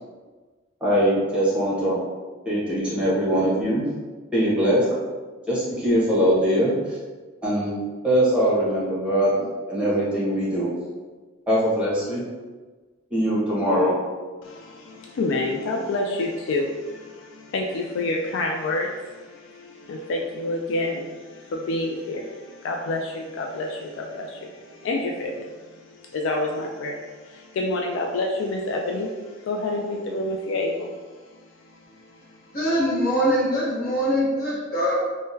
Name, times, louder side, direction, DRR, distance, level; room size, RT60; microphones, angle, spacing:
voice 1, 0.8-2.0 2.4-3.8 4.3-4.8 5.5-7.0 7.4-7.7 8.0-10.7 11.5-12.2 13.1-13.9, equal, 5° right, -9 dB, 1.0 m, -22 dB
voice 2, 14.4-32.5, left 2 dB, 65° left, 1 dB, 0.3 m, -29 dB
voice 3, 32.5-35.0, equal, 45° left, -6 dB, 1.0 m, -23 dB
3.6 x 2.1 x 2.7 m, 1.4 s
head